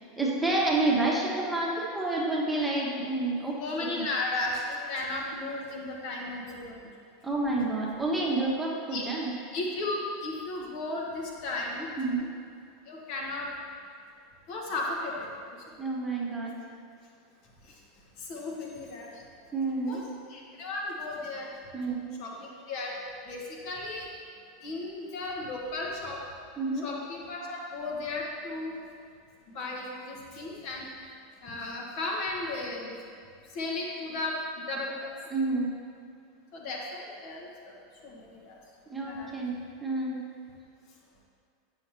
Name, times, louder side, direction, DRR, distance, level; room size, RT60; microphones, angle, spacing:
voice 1, 0.2-3.5 7.2-9.3 12.0-12.3 15.8-16.5 19.5-20.0 21.7-22.1 22.3-22.4 26.6-26.9 35.3-35.7 38.9-39.5 39.8-40.2, right 2 dB, 10° right, -4 dB, 1.1 m, -29 dB
voice 2, 3.6-6.7 8.9-9.0 9.5-11.9 12.9-13.5 14.5-15.1 18.2-19.1 19.9-20.0 20.3-21.5 22.2-22.3 22.7-22.9 23.3-23.4 23.6-24.1 24.6-26.2 26.8-28.8 29.5-30.8 31.4-33.0 33.5-34.3 34.7-35.1 36.5-37.7 38.0-38.5 39.0-39.3, left 2 dB, 50° left, -2 dB, 1.1 m, -34 dB
8.5 x 5.8 x 3.0 m, 2.3 s
figure-of-eight pair, 80°, 0 cm